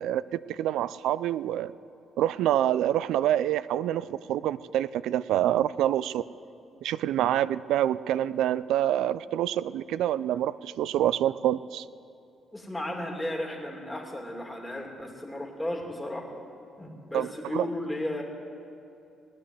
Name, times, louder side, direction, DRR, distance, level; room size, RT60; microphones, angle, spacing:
voice 1, 0.0-1.7 2.2-6.2 6.8-11.8 17.1-17.7, right 12 dB, 85° right, 0.4 m, -27 dB
voice 2, 12.5-16.2 16.8-18.2, left 1 dB, 10° left, 2.7 m, -34 dB
18.5 x 9.7 x 7.7 m
cardioid pair, 90°, 0 cm